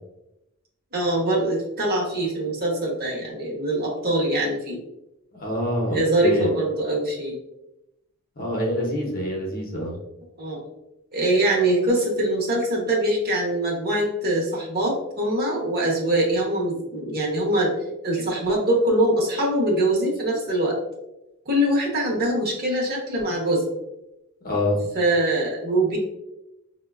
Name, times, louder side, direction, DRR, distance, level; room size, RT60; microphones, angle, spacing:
voice 1, 0.9-4.8 5.9-7.3 10.4-10.6 11.1-17.7 18.0-20.8 21.5-23.6 24.9-26.0, right 1 dB, 45° right, -2 dB, 0.8 m, -23 dB
voice 2, 5.3-6.5 8.4-10.0 24.4-24.8, left 1 dB, 40° left, -1 dB, 0.7 m, -26 dB
4.6 x 2.1 x 2.3 m, 0.90 s
head